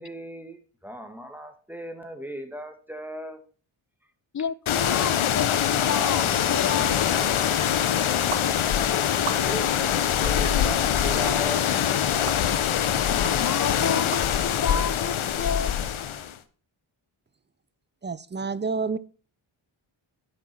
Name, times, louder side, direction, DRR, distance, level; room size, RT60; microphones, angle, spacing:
voice 1, 0.0-3.4 9.4-11.8, equal, 5° right, 6 dB, 1.9 m, -37 dB
voice 2, 4.3-7.3 13.1-15.8, left 7 dB, 35° left, 18 dB, 0.6 m, -31 dB
sound 1, 4.7-16.3, left 9 dB, 70° left, 0.9 m, -24 dB
Crying sobbing, 5.5-7.0 7.6-8.1 8.4-8.5 8.9-9.0 9.5-9.6 9.9-10.0, left 4 dB, 55° left, 2.4 m, -43 dB
sound 2, 8.3-8.5 9.2-9.7 10.2-10.4 11.3-11.4 12.3-12.4 13.2-13.4 14.1-14.2, right 8 dB, 90° right, 0.9 m, -35 dB
voice 3, 18.0-19.0, right 4 dB, 20° right, 18 dB, 0.6 m, -28 dB
10.0 x 5.4 x 4.4 m, 0.39 s
cardioid pair, 45°, 50 cm